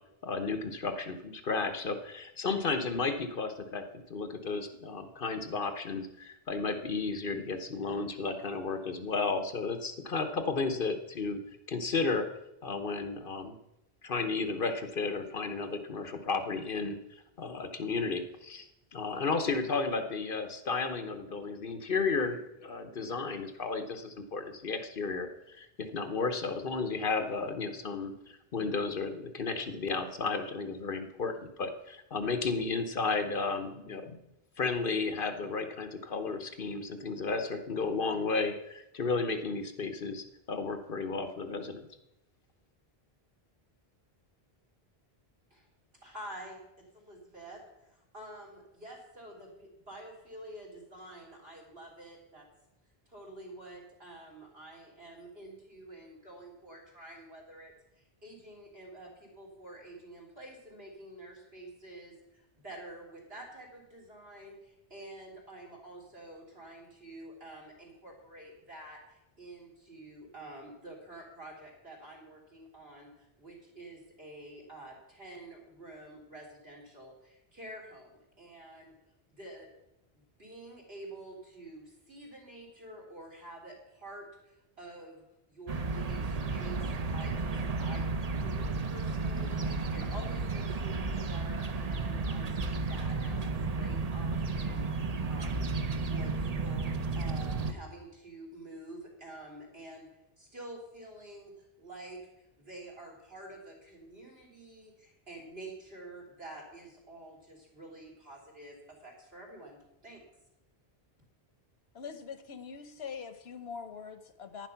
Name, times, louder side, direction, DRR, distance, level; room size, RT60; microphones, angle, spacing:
voice 1, 0.2-3.8 4.1-11.4 11.7-12.3 12.6-13.5 14.0-28.1 28.5-34.2 34.6-41.8, left 4 dB, 60° left, 8 dB, 1.2 m, -33 dB
voice 2, 46.0-52.5 53.1-78.9 79.3-79.7 80.1-88.0 88.4-95.7 96.0-100.1 100.4-110.2, right 1 dB, 70° right, 0 dB, 4.0 m, -48 dB
sound 1, 85.7-97.7, right 3 dB, 40° right, 0.8 m, -33 dB
voice 3, 111.9-114.7, left 6 dB, 80° left, 10 dB, 1.2 m, -43 dB
10.5 x 9.9 x 5.7 m, 0.88 s
omnidirectional pair, 1.0 m